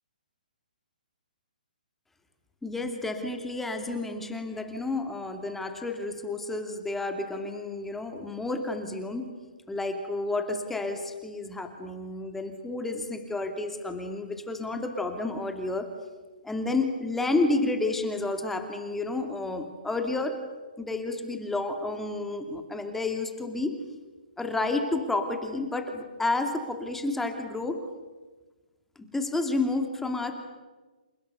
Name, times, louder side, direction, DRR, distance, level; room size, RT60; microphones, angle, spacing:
voice 1, 2.6-9.3 9.7-15.9 16.4-20.4 20.8-23.7 24.4-27.8 29.0-30.4, left 2 dB, 5° left, 5 dB, 2.5 m, -30 dB
29.5 x 29.0 x 6.8 m, 1.2 s
figure-of-eight pair, 135°, 5 cm